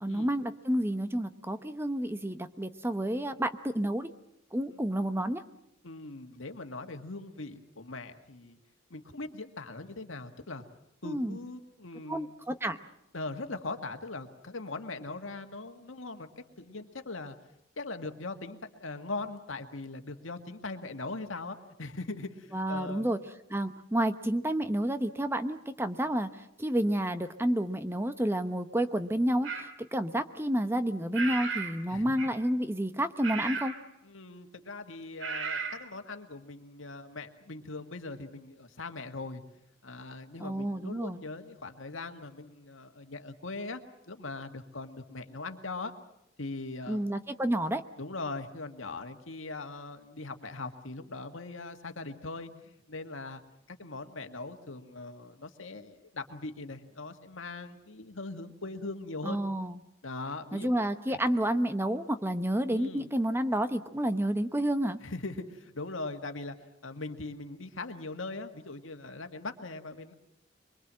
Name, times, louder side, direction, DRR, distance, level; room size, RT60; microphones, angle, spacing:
voice 1, 0.0-4.1 4.5-5.4 11.0-11.4 12.1-12.8 22.5-23.2 23.5-33.7 40.4-41.2 46.9-47.8 59.2-59.8 60.5-65.0, right 1 dB, 10° right, 10 dB, 0.9 m, -30 dB
voice 2, 5.8-8.6 8.9-10.6 11.0-12.3 13.1-16.3 16.6-17.4 17.8-23.1 31.9-32.2 34.0-39.4 39.8-43.8 44.1-45.9 46.4-47.0 48.0-53.4 53.7-59.4 60.0-60.7 61.1-61.2 62.7-63.1 65.0-66.6 66.8-70.1, left 3 dB, 85° left, 6 dB, 1.9 m, -40 dB
sound 1, 29.4-29.7 31.1-31.8 32.2-32.5 33.2-33.8 35.2-35.8, right 5 dB, 70° right, 2.5 m, -34 dB
24.0 x 23.5 x 7.6 m, 0.80 s
head